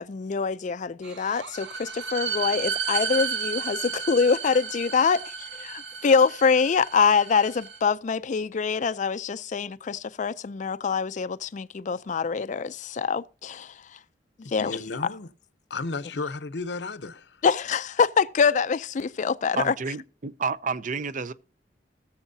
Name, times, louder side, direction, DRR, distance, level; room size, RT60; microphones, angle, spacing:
voice 1, 0.0-14.0 14.4-15.1 17.4-20.0, left 5 dB, 45° left, 0.4 m, -25 dB
sound 1, 1.0-7.8, right 6 dB, 90° right, 0.9 m, -33 dB
voice 2, 14.4-15.3 15.7-17.4, left 3 dB, 70° left, 0.8 m, -34 dB
voice 3, 19.5-21.3, right 5 dB, 45° right, 0.5 m, -30 dB
19.5 x 7.1 x 2.7 m
head